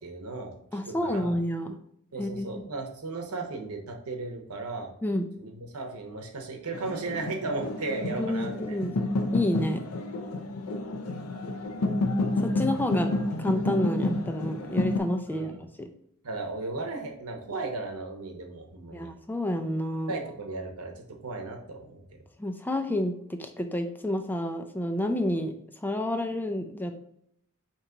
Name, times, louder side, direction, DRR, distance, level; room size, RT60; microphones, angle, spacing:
voice 1, 0.0-0.5 0.9-1.3 2.1-4.9 5.4-8.8 12.4-12.7 15.3-15.6 16.2-19.1 20.1-22.0, right 3 dB, 80° right, 2 dB, 0.9 m, -36 dB
voice 2, 0.7-1.8 2.2-2.6 5.0-5.3 8.1-9.0 9.3-9.8 12.4-13.1 13.4-15.9 18.9-20.1 22.4-25.5 25.8-26.9, left 1 dB, 10° left, 5 dB, 0.3 m, -29 dB
sound 1, 6.7-15.0, left 2 dB, 85° left, 0.5 m, -30 dB
4.5 x 3.0 x 3.7 m, 0.73 s
head